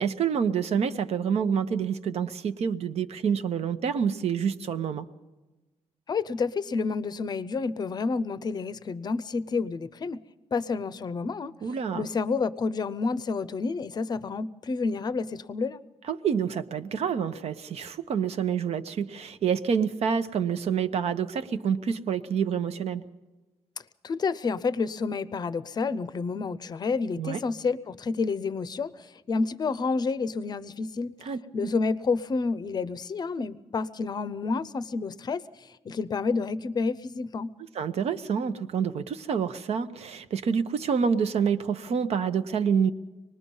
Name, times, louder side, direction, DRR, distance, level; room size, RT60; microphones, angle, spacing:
voice 1, 0.0-5.0 11.6-12.1 16.1-23.0 27.2-27.4 31.2-31.7 37.7-42.9, right 7 dB, 60° right, 10 dB, 1.0 m, -27 dB
voice 2, 6.1-10.2 10.5-11.5 11.9-15.8 24.0-28.9 29.3-31.1 31.5-35.4 35.8-37.5, left 4 dB, 35° left, 16 dB, 0.7 m, -29 dB
25.5 x 20.0 x 5.5 m, 1.1 s
wide cardioid pair, 150°, 12 cm